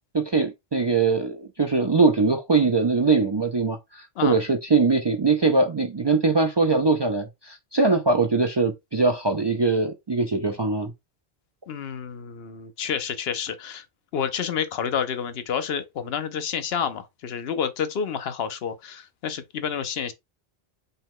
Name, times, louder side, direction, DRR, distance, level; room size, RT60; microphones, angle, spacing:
voice 1, 0.1-10.9, right 4 dB, 40° right, 0.4 m, -22 dB
voice 2, 11.7-13.8 14.1-20.1, left 7 dB, 75° left, 0.9 m, -29 dB
5.5 x 2.2 x 3.5 m
omnidirectional pair, 1.1 m